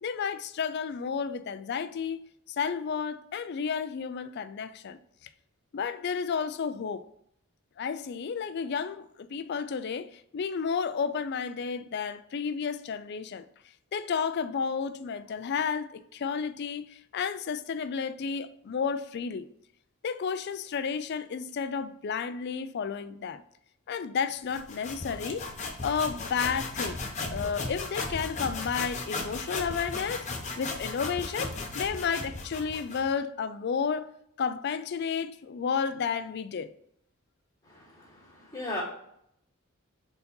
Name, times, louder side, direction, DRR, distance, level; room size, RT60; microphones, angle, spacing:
voice 1, 0.0-2.2 2.5-5.0 5.7-7.0 7.8-13.4 13.9-19.5 20.0-23.4 23.9-25.5 25.8-27.0 27.3-30.3 30.6-34.1 34.4-36.7, left 6 dB, 50° left, 0.4 m, -32 dB
sound 1, 24.5-33.1, left 3 dB, 35° left, 0.9 m, -36 dB
voice 2, 37.6-38.8, left 2 dB, 20° left, 2.0 m, -38 dB
4.6 x 3.9 x 5.3 m
head